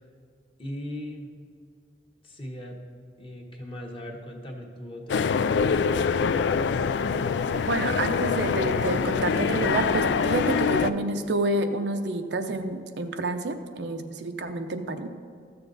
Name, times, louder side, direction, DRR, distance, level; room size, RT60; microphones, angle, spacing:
voice 1, 0.6-1.3 2.2-2.8 3.2-5.5, left 1 dB, 30° left, 1 dB, 1.3 m, -38 dB
sound 1, 5.1-10.9, left 5 dB, 80° left, 0.3 m, -24 dB
voice 2, 7.5-15.1, right 2 dB, 80° right, 7 dB, 0.7 m, -28 dB
13.5 x 6.9 x 4.0 m, 2.2 s
head